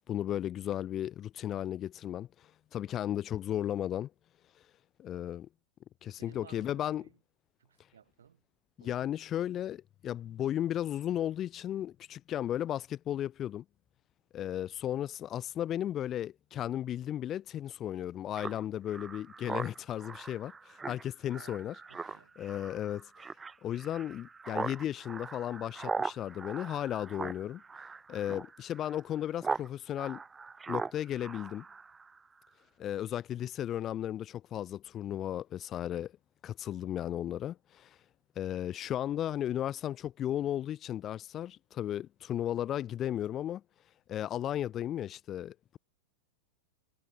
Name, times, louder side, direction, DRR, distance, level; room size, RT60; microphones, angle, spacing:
voice 1, 0.1-2.3 2.7-4.1 5.0-5.5 6.0-7.0 8.8-13.6 14.3-21.7 22.4-23.3 23.6-27.6 28.1-30.2 30.7-31.6 32.8-36.1 36.4-38.0 38.4-43.6 44.1-45.8, left 11 dB, 30° left, 0.4 m, -35 dB
voice 2, 6.2-7.2 7.6-8.4 8.8-9.0 21.3-22.4, right 8 dB, 65° right, 2.1 m, -58 dB
Speech synthesizer, 18.4-29.7 30.0-32.2, right 4 dB, 15° right, 1.3 m, -40 dB
figure-of-eight pair, 90°, 0 cm